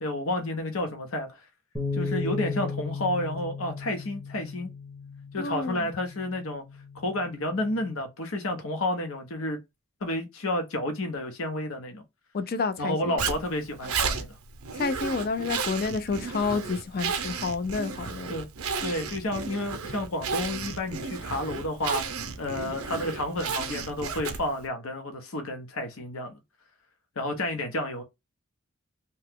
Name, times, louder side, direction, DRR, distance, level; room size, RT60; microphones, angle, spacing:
voice 1, 0.0-1.4 1.9-4.7 5.3-6.6 6.9-9.6 10.0-12.0 12.8-14.4 18.3-18.5 18.8-22.0 22.4-26.4 27.2-28.0, left 1 dB, 70° left, 0.8 m, -31 dB
sound 1, 1.8-8.0, left 4 dB, 10° left, 0.8 m, -36 dB
voice 2, 5.4-5.9 12.3-13.1 14.7-18.3, left 4 dB, 45° left, 0.4 m, -29 dB
Zipper (clothing), 13.2-24.6, right 5 dB, 80° right, 0.6 m, -33 dB
2.8 x 2.3 x 3.4 m
head